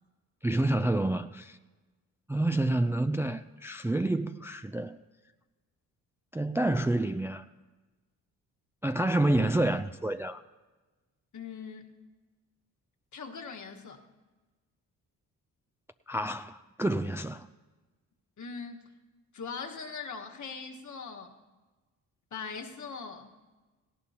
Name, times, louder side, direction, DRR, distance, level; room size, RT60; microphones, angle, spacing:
voice 1, 0.4-1.6 2.3-5.0 6.3-7.4 8.8-10.4 16.1-17.5, right 1 dB, 5° right, 0.4 m, -28 dB
voice 2, 11.3-11.9 13.1-14.0 18.4-18.8 19.3-21.4 22.3-23.3, left 5 dB, 50° left, 1.5 m, -41 dB
18.0 x 16.5 x 2.9 m
supercardioid pair, 60°, 37 cm